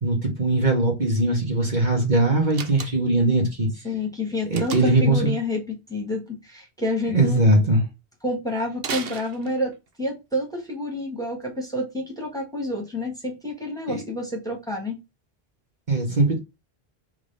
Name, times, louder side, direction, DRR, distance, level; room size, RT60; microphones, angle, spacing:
voice 1, 0.0-3.7 4.5-5.3 7.1-7.8 13.9-14.0 15.9-16.4, right 2 dB, 45° right, 2.0 m, -20 dB
Slam, 2.5-3.3 4.5-5.1 8.8-9.9, right 6 dB, 65° right, 1.0 m, -34 dB
voice 2, 3.8-7.4 8.2-15.0, left 1 dB, 5° left, 1.8 m, -29 dB
4.7 x 3.7 x 5.6 m
omnidirectional pair, 1.1 m